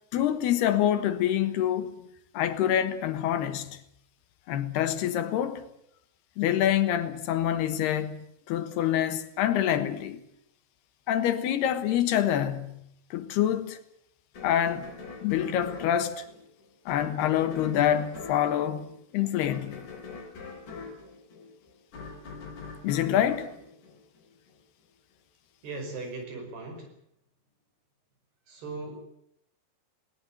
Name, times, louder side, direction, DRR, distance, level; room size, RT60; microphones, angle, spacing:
voice 1, 0.1-1.9 2.3-3.8 4.5-5.6 6.4-10.2 11.1-12.8 13.1-13.8 14.4-14.9 15.2-16.2 16.9-18.9 19.1-19.8 22.8-23.5, left 10 dB, 75° left, 3.3 m, -26 dB
sound 1, 14.3-24.6, left 4 dB, 45° left, 5.7 m, -43 dB
voice 2, 25.6-26.9 28.5-29.0, right 3 dB, 70° right, 7.5 m, -38 dB
20.5 x 19.0 x 8.9 m
omnidirectional pair, 4.8 m